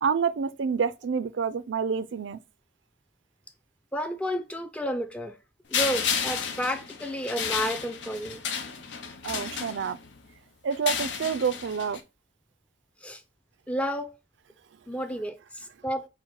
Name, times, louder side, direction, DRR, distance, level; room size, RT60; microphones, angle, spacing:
voice 1, 0.0-2.4 9.2-10.0 10.6-12.0, right 6 dB, 85° right, 0.4 m, -28 dB
voice 2, 3.9-5.4 5.7-8.4 13.0-13.2 13.7-14.1 14.9-16.1, equal, 5° left, 0.4 m, -31 dB
sound 1, 5.7-10.2 10.7-12.0, left 7 dB, 85° left, 0.7 m, -32 dB
4.5 x 2.1 x 4.5 m
head